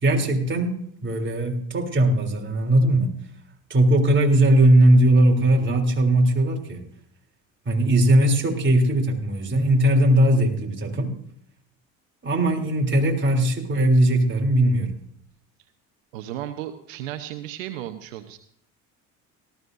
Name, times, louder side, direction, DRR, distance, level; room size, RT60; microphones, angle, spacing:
voice 1, 0.0-3.2 3.7-6.8 7.7-11.2 12.2-15.0, right 1 dB, 30° right, 1 dB, 3.5 m, -19 dB
voice 2, 16.1-18.4, right 12 dB, 90° right, 9 dB, 1.0 m, -34 dB
18.5 x 14.5 x 2.7 m, 0.68 s
hypercardioid pair, 70°, 38 cm